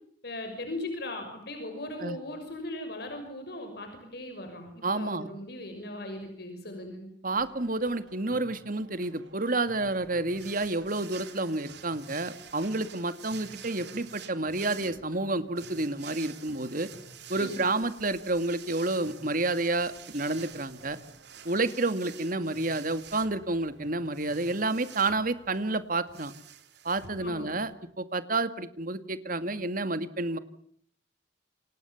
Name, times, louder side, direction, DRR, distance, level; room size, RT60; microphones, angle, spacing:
voice 1, 0.2-7.1 17.3-17.6 27.2-27.5, left 1 dB, 60° left, 5 dB, 6.0 m, -38 dB
voice 2, 4.8-5.3 7.2-16.9 17.3-21.0 21.4-26.3 26.8-27.7 28.0-30.4, right 2 dB, 50° right, 11 dB, 2.1 m, -30 dB
sound 1, 7.3-25.8, right 1 dB, 85° right, 6.7 m, -55 dB
sound 2, 10.3-27.7, right 9 dB, 65° right, 3.2 m, -49 dB
29.0 x 26.5 x 7.2 m, 0.62 s
head